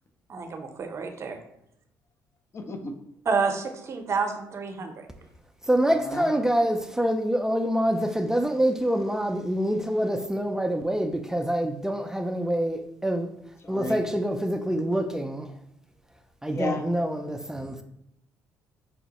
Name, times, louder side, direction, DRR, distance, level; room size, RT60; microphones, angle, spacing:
voice 1, 0.3-1.4 3.3-5.1 17.6-17.7, right 5 dB, 45° right, 0.6 m, -29 dB
voice 2, 2.5-2.9 6.1-6.4 13.6-14.0 16.5-16.8, left 2 dB, 40° left, 0.6 m, -32 dB
voice 3, 5.6-13.3 13.7-15.5 16.4-17.8, equal, 5° right, 0.4 m, -26 dB
5.3 x 2.0 x 2.8 m
supercardioid pair, 65°, 7 cm